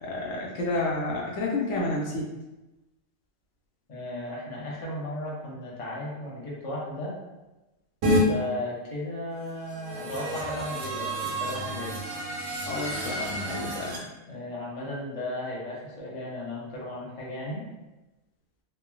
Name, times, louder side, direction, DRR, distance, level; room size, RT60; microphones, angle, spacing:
voice 1, 0.0-2.3 12.7-14.0, left 2 dB, 70° left, -3 dB, 0.9 m, -30 dB
voice 2, 3.9-7.1 8.1-11.9 14.3-17.6, left 1 dB, 35° left, -5 dB, 0.6 m, -35 dB
sound 1, 8.0-8.2 9.6-14.0, equal, 65° right, 0.8 m, -30 dB
3.1 x 2.3 x 2.2 m, 1.0 s
omnidirectional pair, 1.4 m